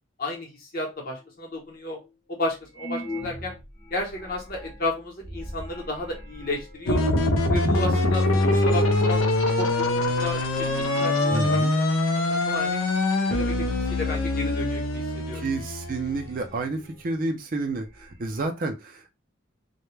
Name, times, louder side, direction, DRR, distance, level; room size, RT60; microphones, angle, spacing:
voice 1, 0.2-2.0 2.3-3.5 3.9-7.1 7.5-9.2 9.6-11.6 12.2-12.8 13.3-15.4, left 2 dB, 45° left, 0 dB, 0.8 m, -32 dB
Wobbling soundscape, 1.2-1.3 2.0-2.1 2.7-7.0 7.7-7.8 8.1-11.6 11.9-12.0 12.6-13.0 13.3-13.7 15.0-15.1 15.5-17.1 17.4-17.5 17.7-18.4, equal, 20° left, 0.6 m, -41 dB
sound 1, 6.8-16.4, left 2 dB, 90° left, 0.5 m, -23 dB
voice 2, 11.3-11.7 15.3-19.1, right 3 dB, 45° right, 4 dB, 0.4 m, -30 dB
2.2 x 2.1 x 3.1 m, 0.25 s
head